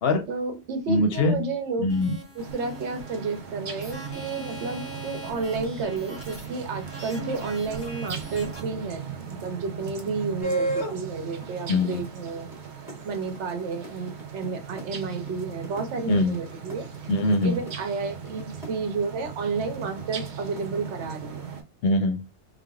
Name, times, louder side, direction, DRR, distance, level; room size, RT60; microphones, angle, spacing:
voice 1, 0.3-1.9 2.3-12.5 13.0-16.9 17.4-21.5, right 4 dB, 75° right, 1.0 m, -31 dB
voice 2, 0.9-1.5 1.8-2.2 11.7-12.0 16.1-16.3 17.1-17.6 21.8-22.2, left 2 dB, 65° left, 0.8 m, -22 dB
sound 1, 1.9-8.6, equal, 15° left, 0.8 m, -42 dB
sound 2, 2.4-21.6, right 7 dB, 50° right, 0.6 m, -38 dB
sound 3, 10.4-11.0 11.4-18.7 19.7-21.2, right 1 dB, ahead, 1.1 m, -33 dB
3.3 x 2.0 x 2.3 m
omnidirectional pair, 1.2 m